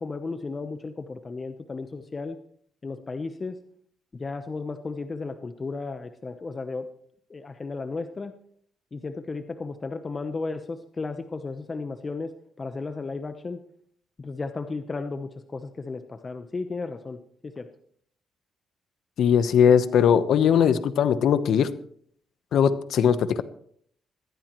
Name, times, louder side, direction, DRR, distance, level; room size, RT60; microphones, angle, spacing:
voice 1, 0.0-2.4 2.8-3.6 4.1-6.9 7.3-8.3 8.9-13.6 14.2-17.7, left 3 dB, 30° left, 0.9 m, -34 dB
voice 2, 19.2-21.7 22.5-23.4, left 8 dB, 70° left, 1.0 m, -20 dB
20.5 x 15.0 x 3.1 m
cardioid pair, 90°, 0 cm